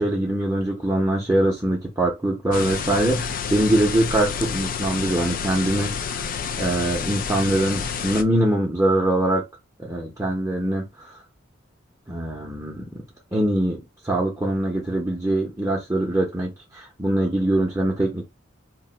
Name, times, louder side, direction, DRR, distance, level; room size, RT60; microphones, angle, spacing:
voice 1, 0.0-6.3 6.5-9.4 9.8-11.1 12.1-13.0 13.3-18.3, right 1 dB, 15° right, 0.6 m, -23 dB
sound 1, 2.5-8.2, left 6 dB, 45° left, 0.3 m, -29 dB
2.5 x 2.2 x 3.8 m
head